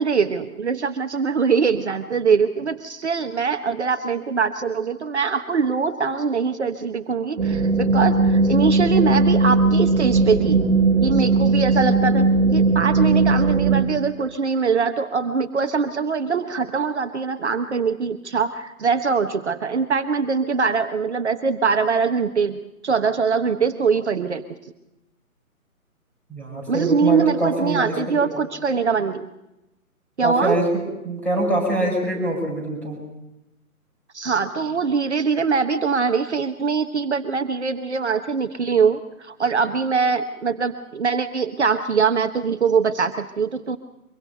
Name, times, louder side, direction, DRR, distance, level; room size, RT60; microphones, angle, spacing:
voice 1, 0.0-10.6 11.0-24.4 26.7-29.3 30.2-30.6 34.1-43.8, right 5 dB, 50° right, 8 dB, 1.2 m, -22 dB
sound 1, 7.4-13.8, right 3 dB, 35° right, 2.4 m, -18 dB
voice 2, 26.3-28.5 30.2-33.0, right 1 dB, 5° left, 0 dB, 5.5 m, -24 dB
24.5 x 23.5 x 5.7 m, 0.91 s
figure-of-eight pair, 140°, 43 cm